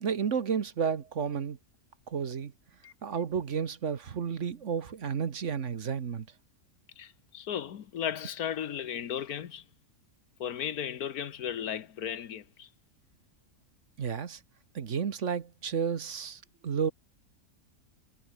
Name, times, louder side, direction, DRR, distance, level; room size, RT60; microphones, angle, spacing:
voice 1, 0.0-1.6 2.1-2.5 3.0-6.3 14.0-14.4 14.7-16.9, right 7 dB, 55° right, 1.5 m, -32 dB
voice 2, 7.0-9.6 10.4-12.7, left 9 dB, 85° left, 1.6 m, -35 dB
omnidirectional pair, 1.5 m